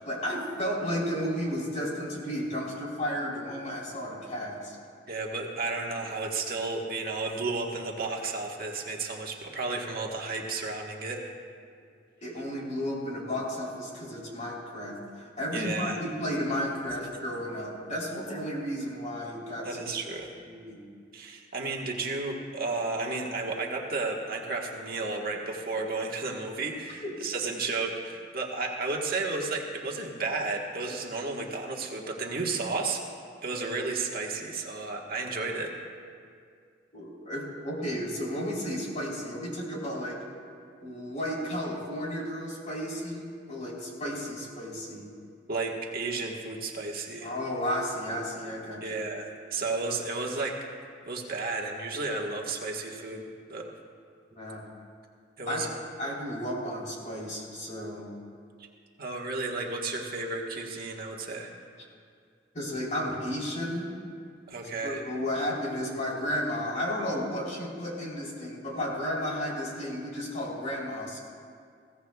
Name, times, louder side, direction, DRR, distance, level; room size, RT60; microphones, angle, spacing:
voice 1, 0.0-4.7 12.2-19.9 20.5-20.8 27.0-27.1 36.9-40.2 40.8-45.1 47.2-49.0 54.3-54.6 55.5-55.6 56.0-58.1 62.5-63.9 64.8-71.2, equal, 40° left, -3 dB, 3.5 m, -33 dB
voice 2, 5.1-11.2 15.5-15.9 17.1-17.2 19.6-20.3 21.1-33.0 33.4-35.7 45.5-47.3 48.8-50.5 51.0-53.2 53.5-53.7 55.4-55.7 59.0-61.5 64.5-65.0, right 3 dB, 55° right, 0 dB, 1.5 m, -33 dB
21.5 x 16.5 x 2.4 m, 2.2 s
head